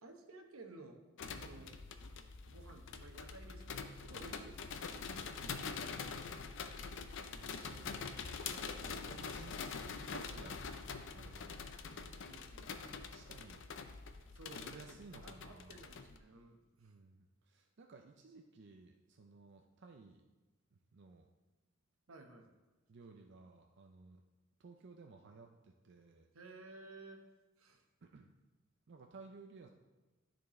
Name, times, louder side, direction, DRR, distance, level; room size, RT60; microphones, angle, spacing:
voice 1, 0.0-1.0 1.3-1.7 2.5-5.3 6.2-6.6 8.4-9.7 10.4-10.8 12.2-12.8 14.3-16.9 22.1-22.5 26.3-27.2 27.6-27.8, right 2 dB, 90° right, 4 dB, 1.0 m, -56 dB
sound 1, 1.2-16.2, left 5 dB, 65° left, 0.5 m, -45 dB
voice 2, 5.3-5.9 7.3-8.1 8.5-9.6 10.0-12.2 13.1-13.6 14.5-15.8 16.8-20.2 20.9-21.3 22.9-24.2 24.6-26.3 28.0-28.3 28.9-29.7, right 4 dB, 55° right, 3 dB, 0.5 m, -57 dB
12.5 x 4.4 x 3.1 m, 1.2 s
head